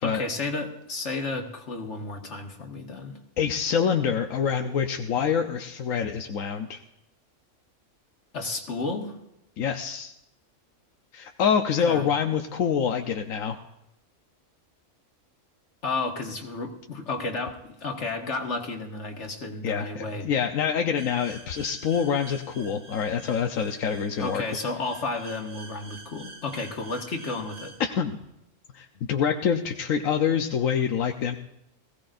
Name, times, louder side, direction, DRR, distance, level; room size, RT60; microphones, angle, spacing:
voice 1, 0.0-3.1 8.3-9.2 11.9-12.1 15.8-20.3 24.2-27.7, left 3 dB, 60° left, 2 dB, 2.1 m, -32 dB
voice 2, 3.4-6.8 9.6-10.1 11.1-13.6 19.6-24.4 27.8-28.2 28.7-31.4, left 7 dB, 85° left, 4 dB, 1.3 m, -26 dB
sound 1, 21.0-27.8, right 3 dB, 60° right, 3.5 m, -47 dB
21.0 x 16.5 x 2.6 m, 0.84 s
omnidirectional pair, 1.4 m